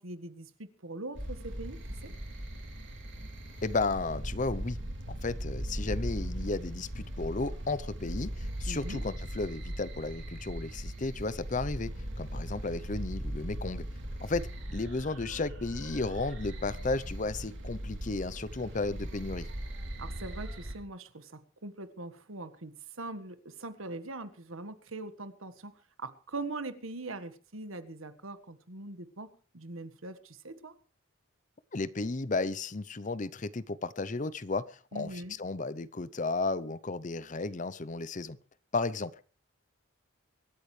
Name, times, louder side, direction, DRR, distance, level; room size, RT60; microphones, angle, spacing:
voice 1, 0.0-2.1 8.7-9.0 20.0-25.7 26.0-30.7 34.9-35.4, right 2 dB, 80° right, 11 dB, 1.5 m, -42 dB
sound 1, 1.1-20.7, right 1 dB, 60° right, 4.3 m, -39 dB
voice 2, 3.6-4.8 5.1-11.9 12.2-13.8 14.2-19.5 31.7-38.4 38.7-39.1, left 3 dB, 35° left, 17 dB, 0.7 m, -34 dB
24.5 x 13.0 x 3.3 m, 0.38 s
head